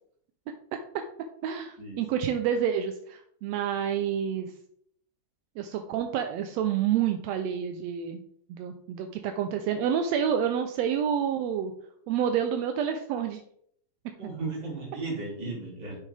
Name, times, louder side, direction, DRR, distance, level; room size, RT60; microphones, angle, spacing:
voice 1, 1.4-4.5 5.6-8.2 8.5-11.7 12.1-13.4, right 8 dB, 75° right, 6 dB, 1.6 m, -28 dB
voice 2, 14.2-16.0, right 3 dB, 35° right, -3 dB, 3.3 m, -35 dB
8.8 x 6.4 x 3.4 m, 0.67 s
omnidirectional pair, 3.5 m